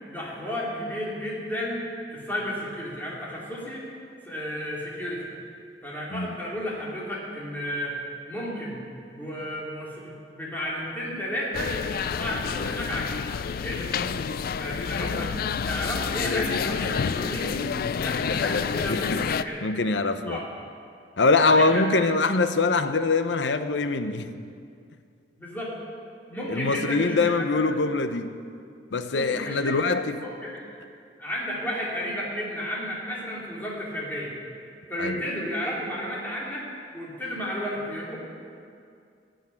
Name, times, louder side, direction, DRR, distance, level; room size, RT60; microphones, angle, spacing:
voice 1, 0.1-1.8 2.1-3.8 4.2-5.3 5.8-8.0 8.3-8.8 9.1-11.7 12.2-13.3 13.6-14.2 14.6-15.3 15.6-17.6 18.0-19.6 20.2-20.5 21.4-21.8 25.4-25.7 26.3-27.3 29.1-29.8 30.2-30.6 31.2-34.3 34.9-36.6 36.9-38.2, equal, 10° left, -5 dB, 3.2 m, -32 dB
sound 1, 11.5-19.4, left 6 dB, 55° left, 0.4 m, -29 dB
voice 2, 18.3-19.2 19.6-20.4 21.2-24.3 26.5-28.4 28.9-30.2 35.0-35.3, left 3 dB, 85° left, 10 dB, 0.8 m, -24 dB
15.5 x 6.5 x 9.8 m, 2.4 s
head